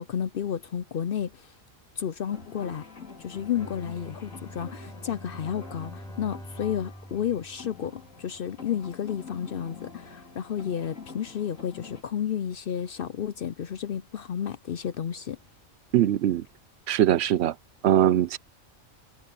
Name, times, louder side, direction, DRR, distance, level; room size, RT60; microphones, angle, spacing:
voice 1, 0.0-1.5 2.0-2.9 3.2-15.4, left 9 dB, 60° left, 0.7 m, -32 dB
sound 1, 2.2-12.0, left 5 dB, 90° left, 3.3 m, -46 dB
Bowed string instrument, 3.3-8.5, equal, 5° left, 4.2 m, -45 dB
voice 2, 15.9-16.4 16.9-17.5 17.8-18.4, right 11 dB, 65° right, 0.8 m, -21 dB
omnidirectional pair, 1.3 m